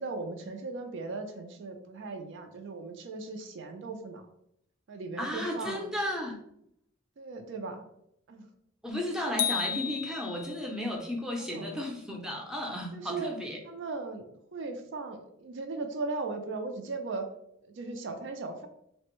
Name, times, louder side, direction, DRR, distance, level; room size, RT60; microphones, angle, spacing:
voice 1, 0.0-4.2 4.9-5.9 7.2-7.8 8.3-8.5 11.4-11.7 12.9-13.3 13.7-17.3 17.6-18.7, right 3 dB, 65° right, 6 dB, 0.4 m, -38 dB
voice 2, 5.2-6.4 8.8-13.6, left 1 dB, 5° right, -1 dB, 0.5 m, -34 dB
sound 1, 9.4-10.8, left 8 dB, 75° left, 0.3 m, -32 dB
3.3 x 2.1 x 2.9 m, 0.74 s
head